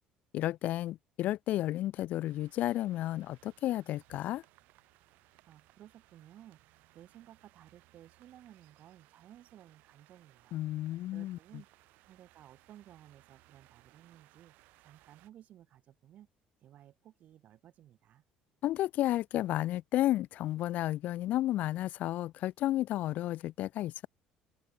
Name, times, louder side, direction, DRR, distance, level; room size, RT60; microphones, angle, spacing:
voice 1, 0.3-4.4 10.5-11.4 18.6-24.1, left 14 dB, 60° left, 0.3 m, -32 dB
sound 1, 2.2-15.3, right 21 dB, 80° right, 7.5 m, -64 dB
voice 2, 5.2-10.6 11.1-11.7 12.0-16.3 16.6-18.2, right 12 dB, 55° right, 3.9 m, -57 dB
cardioid pair, 110°, 3 cm